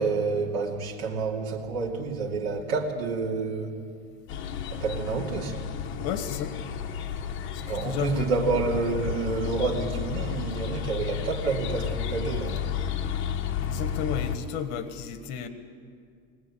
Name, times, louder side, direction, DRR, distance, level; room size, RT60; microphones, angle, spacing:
voice 1, 0.0-3.8 4.7-5.7 7.6-12.8, right 4 dB, 65° right, -2 dB, 2.7 m, -29 dB
sound 1, 4.3-14.4, left 8 dB, 40° left, 1.4 m, -32 dB
voice 2, 6.0-6.6 7.5-8.5 13.6-15.5, left 8 dB, 55° left, 9 dB, 1.5 m, -33 dB
21.0 x 19.0 x 8.5 m, 2.2 s
supercardioid pair, 150°, 32 cm